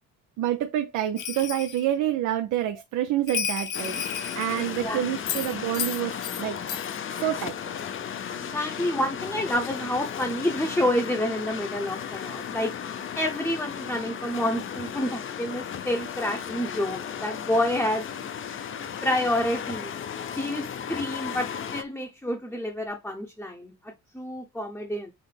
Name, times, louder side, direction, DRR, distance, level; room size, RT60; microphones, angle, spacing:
voice 1, 0.4-4.0 4.3-6.6 7.2-7.5, right 12 dB, 80° right, 0.5 m, -27 dB
Bell, 1.2-1.9 3.3-4.8 5.3-6.4 6.7-7.0, left 9 dB, 80° left, 0.7 m, -32 dB
sound 1, 3.7-21.8, left 8 dB, 45° left, 0.5 m, -35 dB
voice 2, 4.6-5.0 8.3-12.7 13.1-18.1 19.0-20.0 20.4-25.1, left 1 dB, 5° left, 0.7 m, -28 dB
5.7 x 2.0 x 3.3 m
cardioid pair, 90°, 30 cm